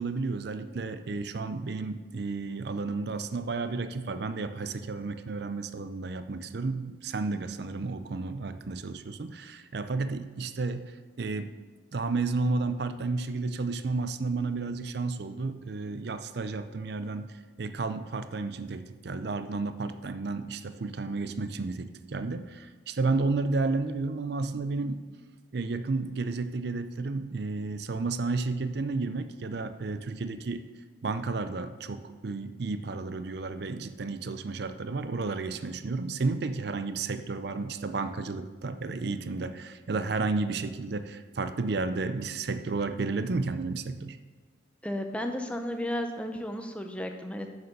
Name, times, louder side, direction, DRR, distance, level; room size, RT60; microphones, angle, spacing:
voice 1, 0.0-11.5 11.9-17.3 17.6-25.0 25.5-30.6 31.0-44.2, right 3 dB, 55° right, 10 dB, 0.5 m, -32 dB
voice 2, 44.8-47.5, left 1 dB, 5° left, 5 dB, 0.6 m, -33 dB
6.8 x 6.7 x 6.6 m, 1.4 s
head